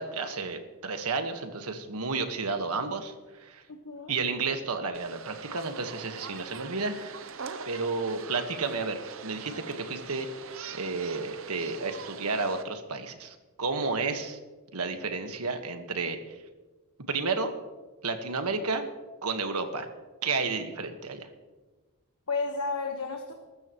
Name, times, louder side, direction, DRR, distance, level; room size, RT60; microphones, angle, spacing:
voice 1, 0.0-3.6 4.1-7.2 7.6-10.3 10.7-14.4 14.7-16.4 17.1-17.5 18.0-18.8 19.2-19.9 20.2-21.3, right 4 dB, 90° right, 6 dB, 1.5 m, -32 dB
voice 2, 3.7-4.1 22.3-23.3, left 4 dB, 80° left, 3 dB, 1.4 m, -32 dB
washington naturalhistory fart, 4.9-12.6, right 6 dB, 65° right, 0.8 m, -43 dB
22.0 x 13.0 x 3.1 m, 1.3 s
head